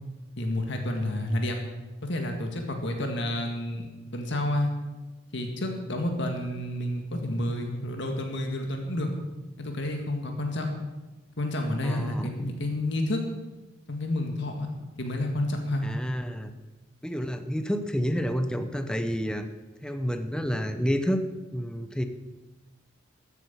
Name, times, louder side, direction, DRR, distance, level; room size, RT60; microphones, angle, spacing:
voice 1, 0.4-1.6 2.1-4.7 5.3-9.1 9.6-10.7 11.4-13.2 13.9-14.7 15.0-15.8, left 1 dB, 65° left, 3 dB, 1.8 m, -30 dB
voice 2, 11.8-12.5 15.8-16.5 17.0-19.5 19.8-21.2 21.5-22.0, equal, 5° left, 8 dB, 0.9 m, -29 dB
13.5 x 9.2 x 7.3 m, 1.1 s
head